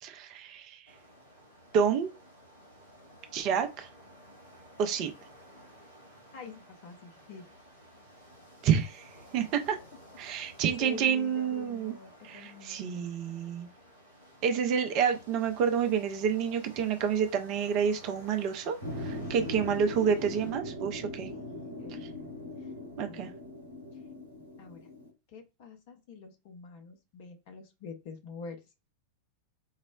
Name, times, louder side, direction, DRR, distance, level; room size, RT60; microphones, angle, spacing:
voice 1, 0.0-0.8 1.7-2.1 3.3-3.9 4.8-5.1 8.6-9.0 9.3-9.8 10.2-11.9 12.2-13.7 14.4-18.8 19.0-21.3 23.0-23.3, right 7 dB, 40° right, 0.5 m, -28 dB
sound 1, 0.9-20.5, equal, 90° left, 1.8 m, -54 dB
voice 2, 6.3-7.5 10.6-13.1 19.2-19.7 21.3-22.1 22.6-22.7 23.0-23.3 24.6-24.8 25.3-28.6, left 5 dB, 50° left, 0.8 m, -46 dB
sound 2, 18.8-25.1, left 1 dB, 85° right, 0.8 m, -40 dB
4.7 x 2.0 x 2.3 m
figure-of-eight pair, 90°, 0 cm